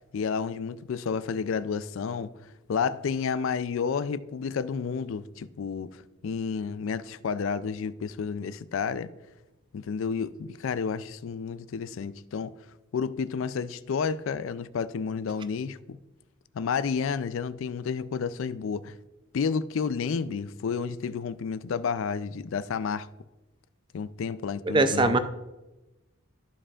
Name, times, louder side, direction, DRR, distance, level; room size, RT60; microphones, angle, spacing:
voice 1, 0.1-9.1 9.7-12.5 12.9-16.0 16.5-19.0 19.3-23.1 23.9-25.2, left 6 dB, 65° left, 0.3 m, -31 dB
voice 2, 24.7-25.2, right 2 dB, 20° right, 0.4 m, -21 dB
13.5 x 5.0 x 2.4 m
head